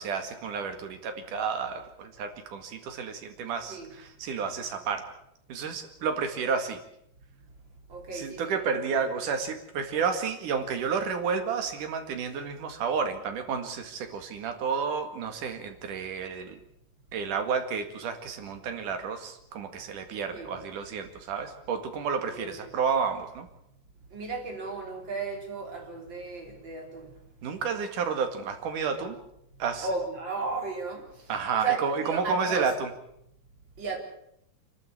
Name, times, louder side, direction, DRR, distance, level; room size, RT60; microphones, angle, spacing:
voice 1, 0.0-5.1 5.5-6.8 8.1-16.6 17.1-23.5 27.4-29.2 29.6-29.9 31.3-32.9, right 6 dB, 70° right, 7 dB, 3.5 m, -31 dB
voice 2, 7.9-8.8 20.3-20.6 22.2-22.7 24.1-27.2 29.0-29.1 29.8-32.7 33.8-34.0, right 4 dB, 35° right, 1 dB, 4.5 m, -35 dB
26.5 x 12.5 x 8.6 m, 0.76 s
omnidirectional pair, 3.8 m